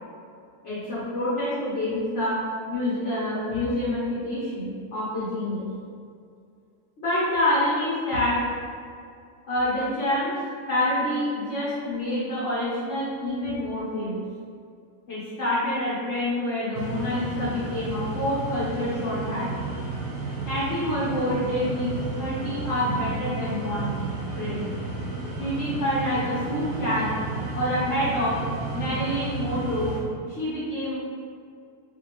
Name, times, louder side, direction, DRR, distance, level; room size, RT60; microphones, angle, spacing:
voice 1, 0.6-2.4 2.7-5.7 7.0-8.4 9.5-10.3 10.7-14.2 15.1-19.5 20.4-24.0 24.4-24.6 25.4-27.1 27.5-28.4 28.7-29.9 30.3-30.9, left 1 dB, 50° left, -11 dB, 1.4 m, -27 dB
sound 1, 16.7-30.0, right 3 dB, 85° right, 1.7 m, -32 dB
5.3 x 2.8 x 3.0 m, 2.3 s
omnidirectional pair, 1.7 m